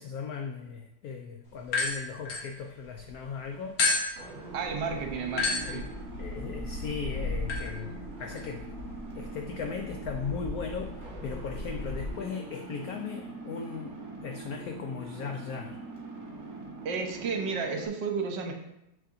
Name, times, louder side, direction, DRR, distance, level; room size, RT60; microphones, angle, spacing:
voice 1, 0.0-3.8 5.6-5.8 6.2-8.7 9.2-15.8, left 5 dB, 85° left, 4 dB, 0.8 m, -37 dB
sound 1, 1.6-3.1 3.8-12.1, left 3 dB, 55° left, 1.3 m, -34 dB
sound 2, 4.2-17.9, right 3 dB, 55° right, 1.7 m, -43 dB
voice 2, 4.5-5.9 16.8-18.5, right 5 dB, 70° right, 3 dB, 1.4 m, -32 dB
6.6 x 6.2 x 2.7 m, 0.83 s
omnidirectional pair, 2.1 m